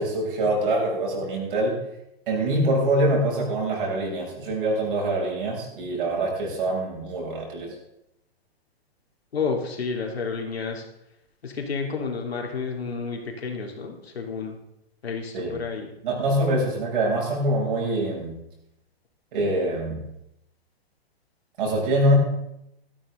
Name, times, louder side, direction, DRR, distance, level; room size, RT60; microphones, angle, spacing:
voice 1, 0.0-1.8 2.3-7.8 15.3-15.6 16.0-18.4 19.3-20.0 21.6-22.1, right 1 dB, 60° right, -2 dB, 7.0 m, -24 dB
voice 2, 9.3-10.8 11.4-14.6 15.0-15.9, left 5 dB, 80° left, 2 dB, 3.1 m, -30 dB
15.5 x 13.5 x 3.8 m, 0.82 s
hypercardioid pair, 125°, 31 cm